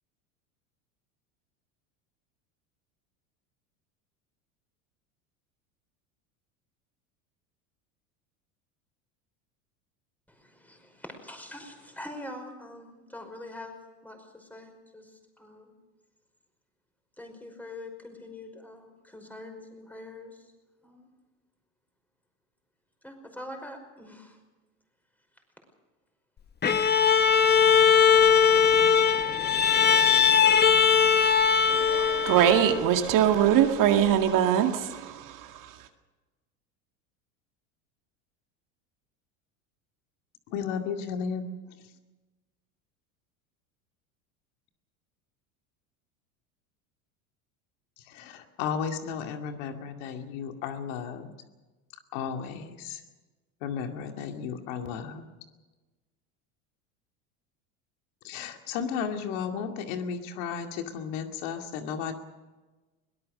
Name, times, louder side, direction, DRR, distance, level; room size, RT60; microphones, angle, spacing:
voice 1, 10.3-13.8 14.0-15.7 17.2-20.5 20.8-21.1 23.0-24.4, left 1 dB, 5° left, 5.3 m, -44 dB
Bowed string instrument, 26.6-32.9, left 7 dB, 25° left, 1.3 m, -20 dB
voice 2, 31.7-35.5, right 10 dB, 55° right, 2.1 m, -23 dB
voice 3, 40.5-41.5 48.0-51.3 52.1-53.0 53.6-55.3 58.2-62.1, left 7 dB, 70° left, 2.4 m, -34 dB
22.5 x 18.0 x 6.6 m
supercardioid pair, 100°, 39 cm